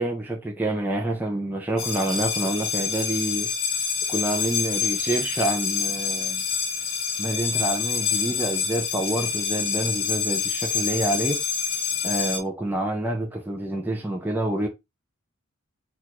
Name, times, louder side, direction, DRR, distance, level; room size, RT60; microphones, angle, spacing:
voice 1, 0.0-3.5 4.1-6.4 7.2-11.4 12.0-14.7, right 1 dB, 10° right, 0.6 m, -27 dB
sound 1, 1.8-12.4, left 7 dB, 65° left, 1.1 m, -27 dB
4.5 x 2.5 x 4.2 m
head